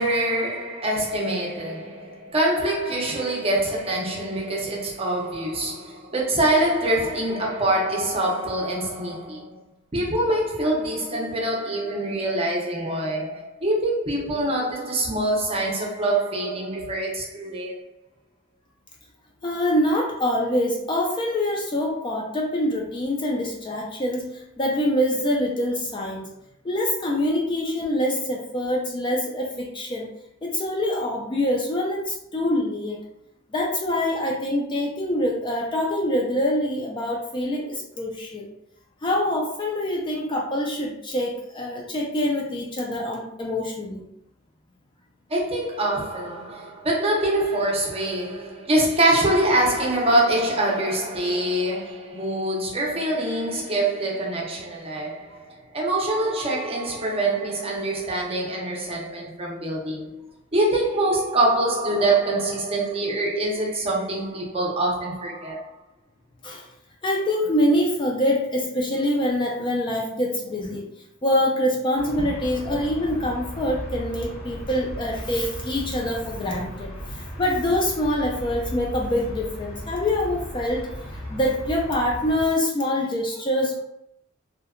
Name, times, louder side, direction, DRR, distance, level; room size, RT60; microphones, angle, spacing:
voice 1, 0.0-9.6 9.9-17.7 45.3-65.7 72.2-72.3 76.5-76.6, right 1 dB, 30° right, 0.5 m, -24 dB
voice 2, 19.4-26.3 26.6-30.1 30.4-33.0 33.5-38.5 39.0-44.1 47.2-47.6 66.4-66.7 67.0-70.8 71.2-83.8, left 1 dB, 25° left, 0.3 m, -25 dB
sound 1, 72.0-82.5, equal, 75° left, 1.0 m, -36 dB
2.7 x 2.1 x 2.4 m
head